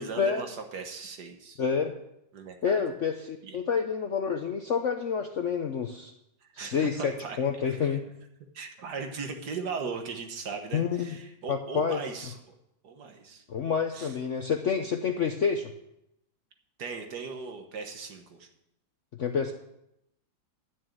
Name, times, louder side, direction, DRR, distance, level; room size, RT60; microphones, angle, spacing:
voice 1, 0.0-1.6 2.3-2.8 3.4-3.6 6.4-7.4 7.6-8.0 8.5-12.5 12.8-13.4 13.9-14.1 16.8-18.5, right 4 dB, 60° right, 5 dB, 1.8 m, -38 dB
voice 2, 1.6-1.9 2.6-6.1 6.5-8.0 10.7-11.2 11.5-12.0 13.5-15.7 19.2-19.5, left 6 dB, 60° left, 5 dB, 0.8 m, -28 dB
11.0 x 6.5 x 8.9 m, 0.82 s
omnidirectional pair, 2.1 m